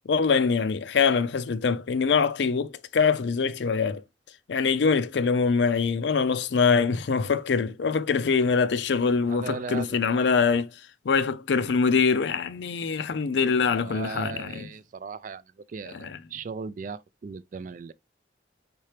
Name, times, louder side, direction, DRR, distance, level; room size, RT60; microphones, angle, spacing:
voice 1, 0.1-4.0 4.5-10.7 11.1-14.7 16.0-16.2, left 5 dB, 70° left, 0.4 m, -24 dB
voice 2, 9.2-9.9 13.6-15.4 15.7-17.9, right 5 dB, 45° right, 0.3 m, -37 dB
4.3 x 3.7 x 3.2 m
head